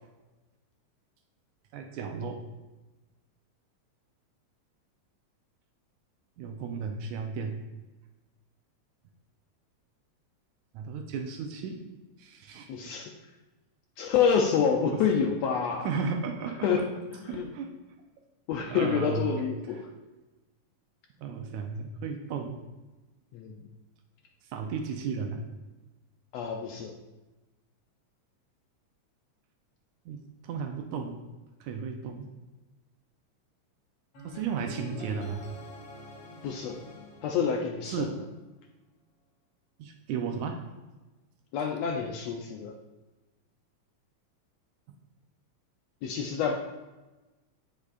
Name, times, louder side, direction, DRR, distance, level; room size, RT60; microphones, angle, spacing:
voice 1, 1.7-2.4 6.4-7.6 10.7-11.8 12.2-12.9 14.9-15.0 15.8-16.8 17.3-17.7 18.5-19.5 21.2-22.6 24.4-25.4 30.1-31.2 31.6-32.3 34.2-35.5 37.9-38.2 39.8-40.6, right 5 dB, 85° right, 4 dB, 2.0 m, -34 dB
voice 2, 12.7-13.1 14.0-15.9 16.6-17.5 18.5-19.9 23.3-23.6 26.3-26.9 36.4-36.8 37.2-38.1 41.5-42.7 46.0-46.5, left 6 dB, 80° left, 2 dB, 1.6 m, -28 dB
sound 1, 34.1-38.2, left 2 dB, 60° left, 2.3 m, -46 dB
14.5 x 5.2 x 2.5 m, 1.1 s
omnidirectional pair, 3.3 m